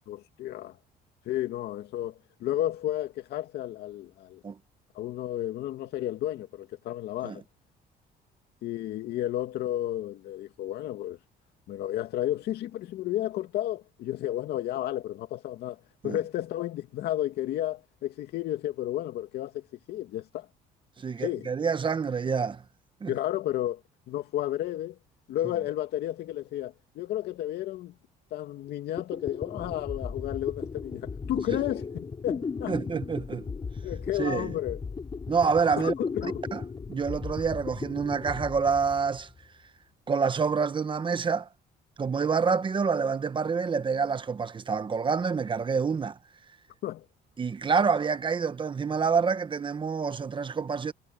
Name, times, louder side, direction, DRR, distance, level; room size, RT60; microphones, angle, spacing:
voice 1, 0.1-0.8 1.3-4.4 4.9-7.4 8.6-11.2 11.7-20.5 21.2-21.5 23.1-23.8 24.1-25.0 25.3-27.9 28.3-32.8 33.8-34.8 35.8-36.3 46.8-47.1, left 13 dB, 75° left, 2.4 m, -32 dB
voice 2, 21.0-22.6 23.0-23.1 32.7-33.5 34.2-34.5 35.3-35.9 36.5-36.6 36.9-39.3 40.1-41.5 42.0-46.2 47.4-50.9, right 5 dB, 30° right, 1.2 m, -27 dB
sound 1, 28.7-28.8 29.0-39.4, left 5 dB, 30° left, 4.0 m, -36 dB
cardioid pair, 110°, 17 cm